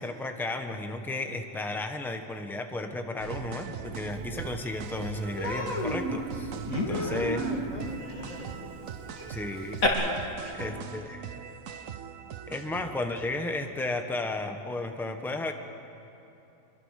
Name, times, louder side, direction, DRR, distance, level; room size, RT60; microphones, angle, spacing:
voice 1, 0.0-6.5 6.9-7.4 9.3-9.8 10.6-11.3 12.5-15.5, left 2 dB, ahead, 5 dB, 1.2 m, -33 dB
sound 1, 3.2-13.4, right 8 dB, 75° right, 1.2 m, -41 dB
Human voice, 4.4-4.5 4.8-5.0 5.4-9.9, left 1 dB, 85° left, 3.2 m, -32 dB
voice 2, 7.0-8.6 10.4-11.3 12.6-12.8, right 1 dB, 30° left, 0 dB, 3.0 m, -41 dB
25.5 x 23.0 x 6.6 m, 3.0 s
omnidirectional pair, 1.4 m